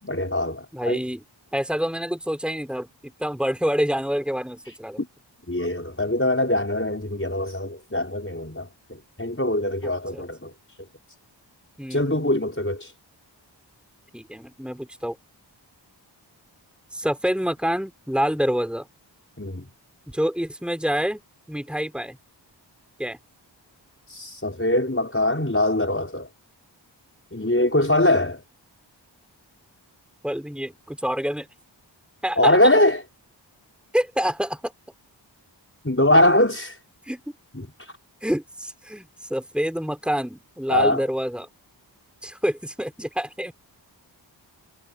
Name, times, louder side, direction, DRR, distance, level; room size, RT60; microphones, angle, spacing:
voice 1, 0.0-1.0 5.5-8.7 9.2-10.5 11.9-12.9 19.4-19.6 24.1-26.3 27.3-28.4 32.4-33.0 35.8-36.8 37.6-37.7 40.7-41.0, left 1 dB, 30° left, 5.5 m, -22 dB
voice 2, 0.7-1.2 1.5-5.0 9.8-10.3 11.8-12.3 14.1-15.2 16.9-18.9 20.1-21.2 21.5-22.2 23.0-23.2 30.2-31.5 32.2-32.7 33.9-34.7 37.1-37.2 38.2-41.5 42.2-43.5, equal, ahead, 4.3 m, -27 dB
wide cardioid pair, 40°, 45 cm